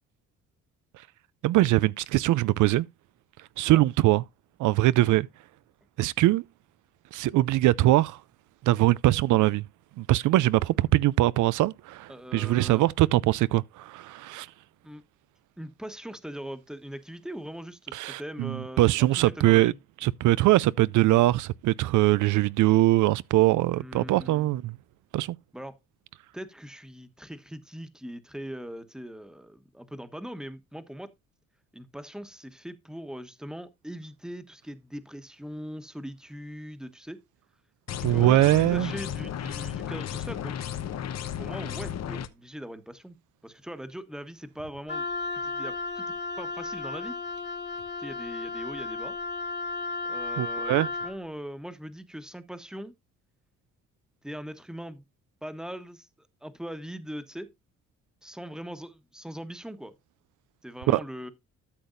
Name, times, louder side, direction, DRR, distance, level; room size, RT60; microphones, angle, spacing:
voice 1, 1.4-2.9 3.6-4.2 4.6-5.3 6.0-6.4 7.1-8.2 8.6-9.6 10.0-14.5 17.9-19.7 20.0-24.8 25.1-25.4 38.0-38.9 50.4-50.9 60.9-61.0, right 16 dB, 75° right, 0.5 m, -22 dB
voice 2, 12.1-12.9 14.8-15.0 15.6-19.8 23.7-24.5 25.5-25.8 26.3-31.1 31.7-37.2 38.0-40.7 41.4-43.2 43.4-45.0 45.3-46.1 46.4-47.2 48.0-49.2 50.0-50.7 51.0-52.9 54.2-55.0 55.4-57.5 58.2-59.9 60.6-61.3, equal, ahead, 1.2 m, -40 dB
sound 1, 37.9-42.3, left 9 dB, 60° left, 1.0 m, -34 dB
Wind instrument woodwind instrument, 44.9-51.2, left 3 dB, 35° left, 1.7 m, -34 dB
13.0 x 6.9 x 2.6 m
cardioid pair, 90°, 30 cm